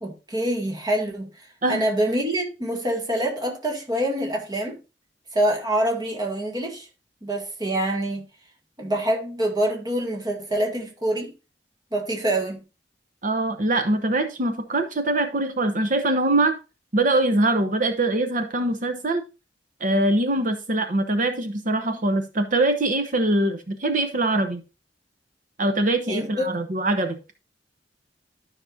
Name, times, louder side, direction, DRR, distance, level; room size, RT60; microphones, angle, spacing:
voice 1, 0.0-4.8 5.3-6.9 7.2-8.2 8.8-11.3 11.9-12.6 26.1-26.4, right 1 dB, 25° right, 2.1 m, -25 dB
voice 2, 13.2-16.6 16.9-19.2 19.8-24.6 25.6-27.2, right 2 dB, 50° right, 1.0 m, -23 dB
12.5 x 6.0 x 2.6 m
head